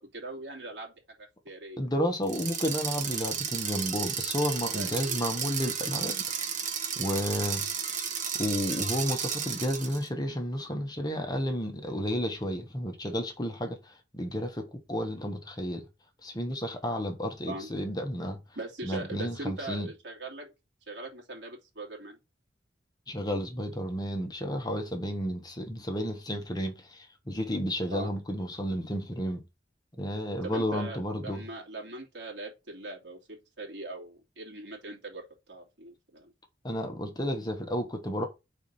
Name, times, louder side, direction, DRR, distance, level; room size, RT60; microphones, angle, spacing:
voice 1, 0.1-0.9 1.4-1.9 4.7-5.2 17.5-17.7 18.6-20.5 20.9-22.2 27.9-28.1 30.4-35.2 35.5-36.3, right 2 dB, 70° right, 2.6 m, -40 dB
voice 2, 1.8-6.2 7.0-7.7 8.3-15.8 16.2-18.4 18.8-19.9 23.1-29.4 30.0-31.4 36.6-38.3, equal, 25° left, 1.2 m, -32 dB
sound 1, 2.2-10.1, right 7 dB, 45° right, 1.1 m, -33 dB
4.7 x 4.3 x 5.4 m
head